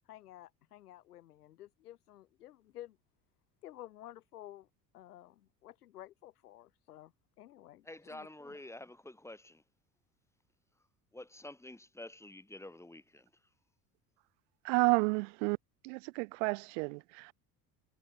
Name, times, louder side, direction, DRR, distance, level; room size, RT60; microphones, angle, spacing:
voice 1, 0.1-3.0 3.6-4.7 4.9-7.1 7.4-8.3, left 13 dB, 70° left, 2.1 m, -52 dB
voice 2, 7.9-9.6 11.1-13.3, left 1 dB, 5° left, 3.4 m, -49 dB
voice 3, 14.6-15.6 15.8-17.3, right 32 dB, 50° right, 0.5 m, -31 dB
figure-of-eight pair, 65°, 48 cm